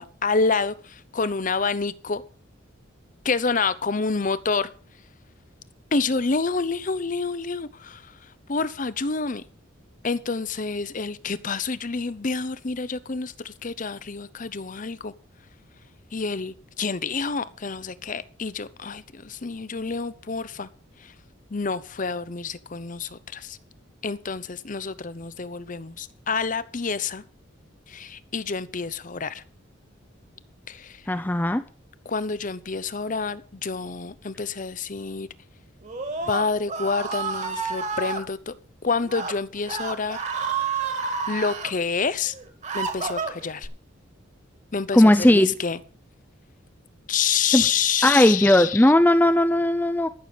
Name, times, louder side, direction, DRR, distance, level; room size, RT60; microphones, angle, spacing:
voice 1, 0.0-2.2 3.2-4.7 5.9-8.0 8.5-9.4 10.0-15.1 16.1-20.7 21.0-21.1 21.5-23.6 24.0-27.2 27.9-29.4 30.7-31.0 32.0-35.3 36.3-38.5 38.8-40.2 41.3-42.3 42.7-43.7 44.7-45.8 47.1-48.8, left 4 dB, 40° left, 0.7 m, -28 dB
voice 2, 31.1-31.6 44.9-45.5 47.5-47.6 48.0-50.1, left 1 dB, 10° left, 0.5 m, -17 dB
Screaming, 35.8-38.2 39.0-39.3 39.6-41.7 42.3-43.7, right 5 dB, 35° right, 2.1 m, -29 dB
13.5 x 6.9 x 7.0 m
head